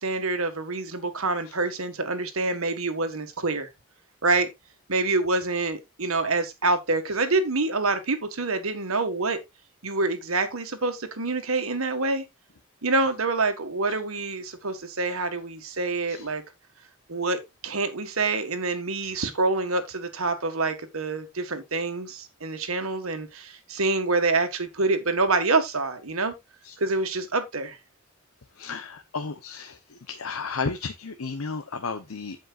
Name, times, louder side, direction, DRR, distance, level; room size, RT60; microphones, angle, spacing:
voice 1, 0.0-3.7 4.2-4.5 4.9-9.4 9.8-12.2 12.8-16.4 17.1-26.3 26.8-27.8, right 3 dB, 75° right, 1.7 m, -26 dB
voice 2, 28.6-29.7 30.1-32.4, left 4 dB, 85° left, 0.9 m, -32 dB
15.5 x 5.4 x 2.5 m
head